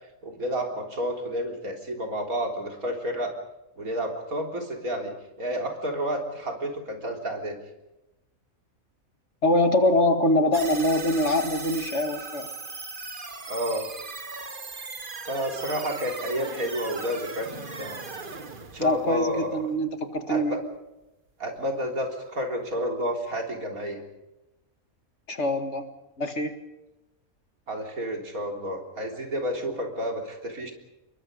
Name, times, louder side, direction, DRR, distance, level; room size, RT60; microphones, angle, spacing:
voice 1, 0.2-3.3 3.8-5.1 5.4-7.6 13.5-13.9 15.2-18.0 18.7-19.6 20.3-20.6 21.4-24.0 27.7-30.7, equal, 75° right, 2 dB, 4.1 m, -30 dB
voice 2, 9.4-12.5 18.8-20.6 25.3-25.9 26.2-26.5, left 1 dB, 55° left, 7 dB, 2.2 m, -24 dB
sound 1, 10.5-19.8, right 3 dB, 35° right, 1.7 m, -38 dB
27.5 x 22.5 x 5.3 m, 0.97 s
omnidirectional pair, 1.5 m